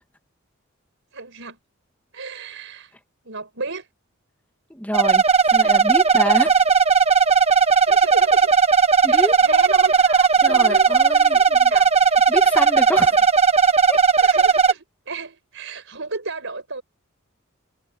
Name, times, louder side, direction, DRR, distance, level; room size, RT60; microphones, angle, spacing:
voice 1, 1.1-1.6 2.1-2.9 3.2-3.9 7.8-8.5 9.1-10.9 11.3-11.9 14.2-16.8, right 3 dB, 65° right, 5.5 m, -33 dB
voice 2, 4.7-5.2 5.5-6.5 9.0-9.4 10.4-11.7 12.3-13.2 13.9-14.0, left 1 dB, 10° left, 2.1 m, -27 dB
sound 1, 4.9-14.7, right 5 dB, 30° right, 1.2 m, -16 dB
head